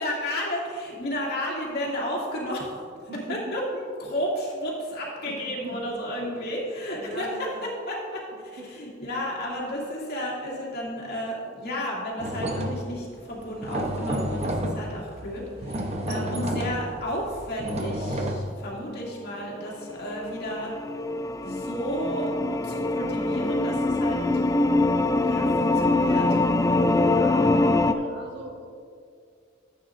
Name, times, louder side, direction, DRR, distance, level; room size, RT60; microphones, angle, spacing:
voice 1, 0.0-2.8 3.3-7.3 7.6-8.3 8.5-20.7 21.4-22.3 22.6-24.4 25.2-26.4, equal, 55° left, -5 dB, 2.4 m, -32 dB
voice 2, 3.1-3.5 5.2-5.8 7.0-7.7 8.6-8.7 15.8-16.2 27.0-28.7, right 1 dB, 60° right, 0 dB, 1.5 m, -39 dB
sound 1, 12.2-13.0 13.3-18.3, equal, 35° right, 0.9 m, -30 dB
sound 2, 19.6-27.9, left 2 dB, 15° left, 0.3 m, -23 dB
14.0 x 8.6 x 2.6 m, 2.3 s
head